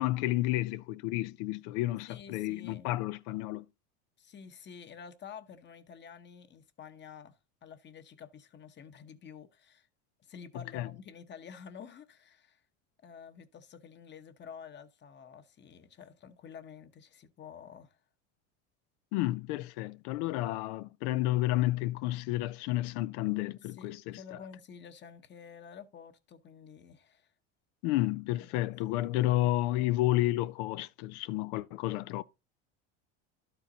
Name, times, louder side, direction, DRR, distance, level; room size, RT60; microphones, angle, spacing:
voice 1, 0.0-3.6 10.7-10.9 19.1-24.2 27.8-32.2, left 16 dB, 70° left, 0.5 m, -31 dB
voice 2, 2.1-2.9 4.2-9.9 10.2-12.6 13.0-18.0 23.6-27.3 28.5-29.1, left 7 dB, 30° left, 1.0 m, -50 dB
11.5 x 4.6 x 3.9 m
supercardioid pair, 105°, 35 cm